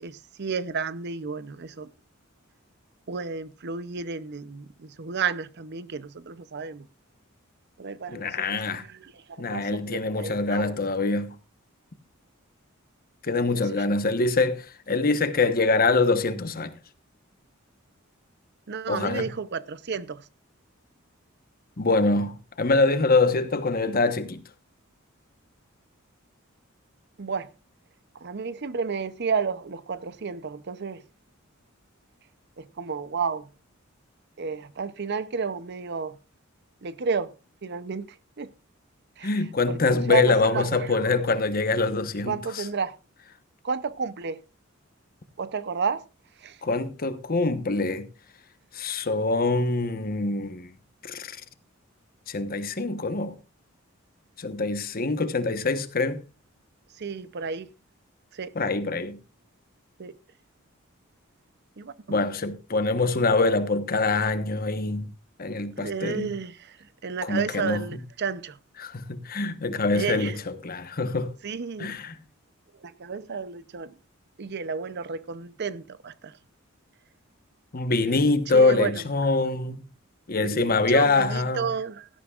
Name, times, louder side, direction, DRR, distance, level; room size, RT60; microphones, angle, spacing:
voice 1, 0.0-1.9 3.1-6.9 7.8-8.6 8.9-10.8 13.5-13.8 18.7-20.2 27.2-27.5 28.2-31.0 32.6-33.5 34.4-36.2 36.8-37.3 37.6-38.5 39.2-39.3 39.7-39.8 40.1-40.8 42.3-42.9 43.6-44.4 45.4-46.0 46.4-46.6 57.0-57.7 58.3-58.5 60.0-60.1 61.8-62.2 65.8-66.8 67.0-68.6 69.9-70.4 71.4-72.0 72.8-73.9 74.4-76.3 78.5-79.0 80.4-82.1, right 5 dB, 55° right, 0.7 m, -32 dB
voice 2, 8.1-8.8 9.4-11.3 13.2-16.7 18.9-19.3 21.8-24.4 39.2-42.7 46.6-48.1 48.7-50.7 51.0-51.4 52.3-53.3 54.4-56.2 58.5-59.2 62.1-65.1 65.4-66.3 67.2-68.0 68.8-71.3 71.8-72.2 77.7-79.8 80.3-81.7, left 3 dB, 45° left, 1.1 m, -24 dB
17.0 x 13.0 x 2.4 m
head